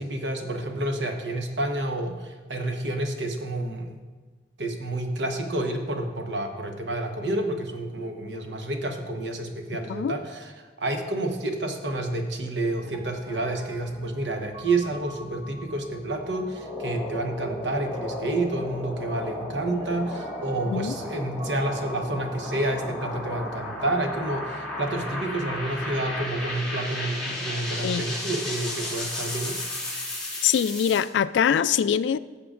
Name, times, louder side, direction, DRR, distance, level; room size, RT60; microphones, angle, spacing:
voice 1, 0.0-4.0 4.6-29.6, right 2 dB, 75° right, 4 dB, 1.1 m, -29 dB
Piano, 12.8-26.5, equal, 35° right, 1.3 m, -47 dB
sound 1, 16.4-31.0, left 1 dB, 5° left, 2.7 m, -34 dB
voice 2, 30.4-32.2, left 8 dB, 75° left, 15 dB, 0.3 m, -23 dB
15.0 x 6.8 x 2.5 m, 1.4 s
head